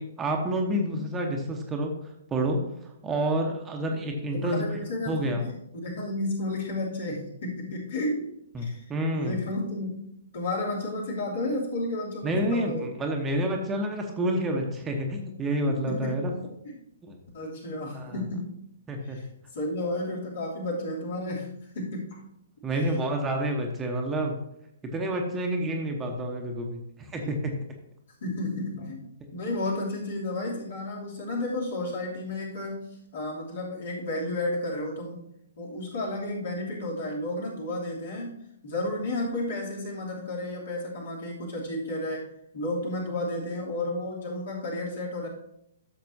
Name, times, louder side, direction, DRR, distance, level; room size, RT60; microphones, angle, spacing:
voice 1, 0.0-1.9 2.3-2.6 3.0-4.8 5.1-5.4 8.5-9.4 12.2-16.3 17.0-17.2 17.9-18.1 18.9-19.2 22.6-24.4 24.9-27.5, right 1 dB, 15° right, 2 dB, 1.1 m, -28 dB
voice 2, 4.3-8.3 8.6-8.9 9.1-10.0 10.3-12.9 15.6-16.8 17.3-18.5 19.0-19.3 19.5-21.5 21.7-22.2 22.7-23.0 27.2-27.3 28.2-35.2 35.6-38.4 38.6-45.3, left 1 dB, 55° left, -3 dB, 3.0 m, -32 dB
13.0 x 6.6 x 2.8 m, 0.79 s
figure-of-eight pair, 120°, 0 cm